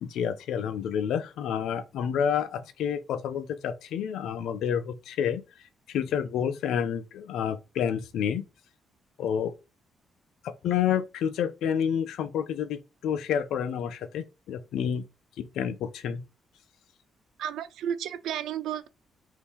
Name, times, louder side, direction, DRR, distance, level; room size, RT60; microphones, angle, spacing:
voice 1, 0.0-5.4 5.9-8.4 9.2-9.5 10.4-15.0 15.4-16.2, left 8 dB, 80° left, 0.5 m, -29 dB
voice 2, 17.4-18.9, right 9 dB, 80° right, 0.3 m, -32 dB
2.8 x 2.7 x 3.5 m
cardioid pair, 90°, 0 cm